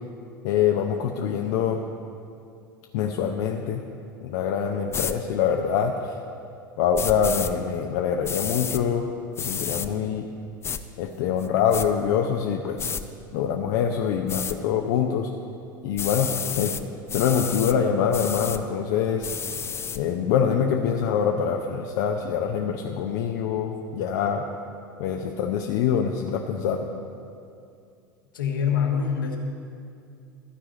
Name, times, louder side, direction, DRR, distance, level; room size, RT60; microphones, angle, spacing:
voice 1, 0.4-1.8 2.9-3.8 4.2-6.1 6.8-9.0 9.4-10.2 11.0-12.9 13.3-15.3 15.8-16.7 17.1-19.3 19.9-24.4 25.0-26.9, left 7 dB, 60° left, 2 dB, 0.7 m, -24 dB
sound 1, 4.9-5.1 6.9-7.5 8.2-8.8 9.4-9.9 10.6-10.8 11.4-11.9 12.8-13.0 14.3-14.6 16.0-16.8 17.1-17.7 18.1-18.6 19.2-20.0, left 7 dB, 25° left, 0.5 m, -30 dB
voice 2, 28.3-29.4, left 7 dB, 75° left, 1 dB, 1.4 m, -24 dB
12.5 x 4.9 x 8.2 m, 2.5 s
figure-of-eight pair, 80°, 11 cm